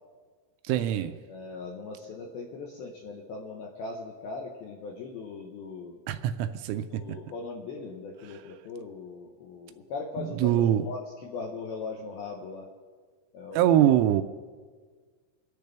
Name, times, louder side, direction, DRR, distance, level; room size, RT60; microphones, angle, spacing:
voice 1, 0.7-1.1 6.1-6.9 10.2-10.9 13.5-14.2, right 11 dB, 85° right, 3.2 m, -23 dB
voice 2, 1.3-6.0 6.9-12.7 13.3-13.8, left 4 dB, 75° left, 2.3 m, -39 dB
25.0 x 10.5 x 3.4 m
omnidirectional pair, 5.8 m